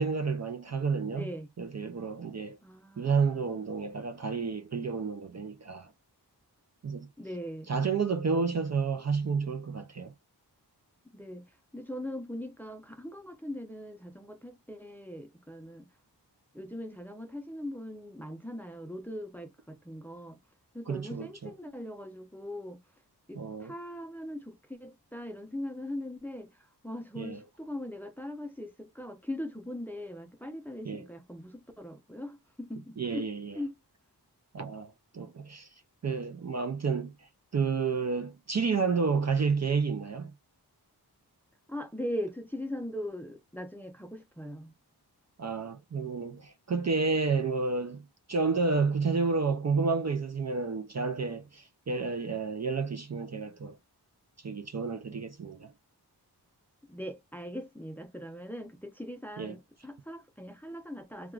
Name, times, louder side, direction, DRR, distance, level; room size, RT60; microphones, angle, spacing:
voice 1, 0.0-1.2 1.6-2.6 3.0-5.9 6.8-7.1 7.7-10.1 20.9-21.3 23.4-23.7 27.2-27.4 30.9-31.0 33.0-33.5 34.5-35.7 36.0-37.1 37.5-40.3 45.4-48.0 48.3-53.8 54.4-55.7 59.4-59.5, right 4 dB, 40° right, 0.4 m, -30 dB
voice 2, 1.1-1.5 2.6-3.5 7.2-7.7 11.0-15.9 16.5-20.4 20.7-22.8 23.3-33.3 33.5-33.7 41.7-44.7 56.8-61.3, left 1 dB, 5° left, 0.6 m, -40 dB
3.5 x 2.3 x 2.3 m
wide cardioid pair, 65°, 41 cm